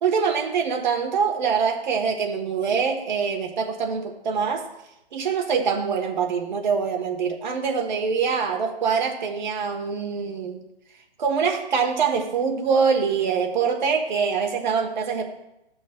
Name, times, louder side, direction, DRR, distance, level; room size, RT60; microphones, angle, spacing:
voice 1, 0.0-4.7 5.1-10.6 11.2-15.2, right 6 dB, 45° right, 3 dB, 1.3 m, -24 dB
13.5 x 6.3 x 2.2 m, 0.87 s
hypercardioid pair, 165°, 32 cm